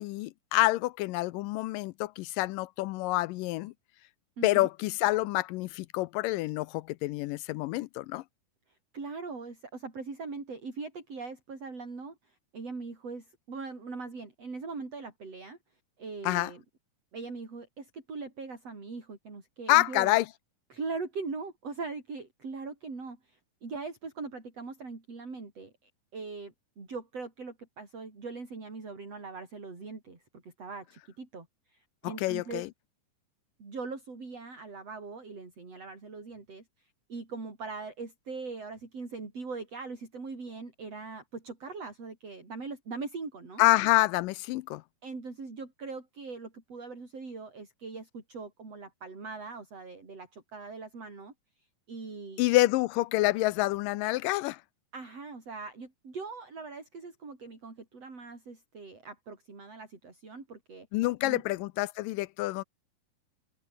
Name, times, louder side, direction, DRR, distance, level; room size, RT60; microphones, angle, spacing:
voice 1, 0.0-3.7 4.4-8.2 16.2-16.5 19.7-20.3 32.0-32.7 43.6-44.8 52.4-54.6 60.9-62.6, left 19 dB, 80° left, 2.2 m, -27 dB
voice 2, 4.4-4.7 8.9-15.6 16.0-16.6 17.1-20.2 20.7-32.6 33.6-43.6 45.0-51.3 51.9-52.4 54.9-60.9 61.2-61.4, right 4 dB, 45° right, 6.8 m, -41 dB
omnidirectional pair, 4.0 m